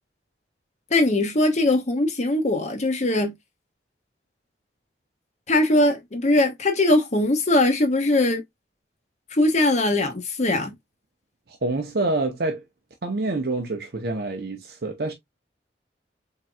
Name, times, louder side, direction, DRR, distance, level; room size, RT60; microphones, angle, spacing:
voice 1, 0.9-3.3 5.5-8.4 9.3-10.7, left 2 dB, 40° left, 0.8 m, -21 dB
voice 2, 11.6-12.6 13.0-15.1, right 2 dB, 60° right, 0.8 m, -26 dB
4.2 x 3.8 x 2.2 m
head